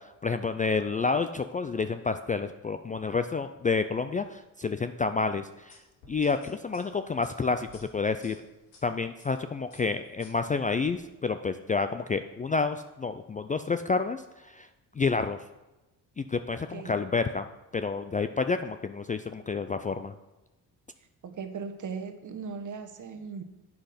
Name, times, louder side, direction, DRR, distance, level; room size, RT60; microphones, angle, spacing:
voice 1, 0.2-5.7 6.1-8.4 8.8-14.7 15.0-15.4 16.2-17.5 17.7-20.1, left 4 dB, 20° left, 9 dB, 0.3 m, -29 dB
sound 1, 5.7-8.8 9.2-9.4 9.7-11.0, left 2 dB, 90° left, 2.6 m, -55 dB
voice 2, 21.2-23.4, right 5 dB, 45° right, 7 dB, 1.1 m, -38 dB
8.4 x 5.8 x 5.1 m, 1.0 s
supercardioid pair, 70°, 41 cm